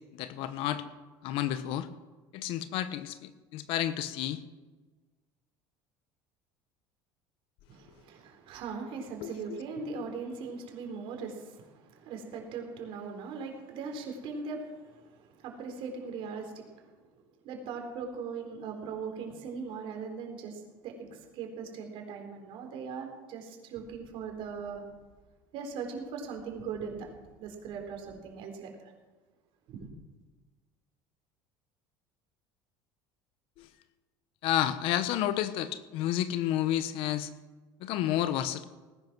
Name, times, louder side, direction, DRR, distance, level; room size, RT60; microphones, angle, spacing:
voice 1, 0.1-0.8 1.2-1.9 2.3-4.4 9.2-9.6 33.6-33.7 34.4-37.3 37.8-38.6, left 12 dB, 65° left, 13 dB, 1.0 m, -31 dB
voice 2, 7.7-16.7 17.4-24.8 25.5-27.1 27.4-28.9 29.7-29.9, right 5 dB, 60° right, 2 dB, 3.9 m, -40 dB
19.0 x 11.0 x 6.1 m, 1.3 s
cardioid pair, 125°, 10 cm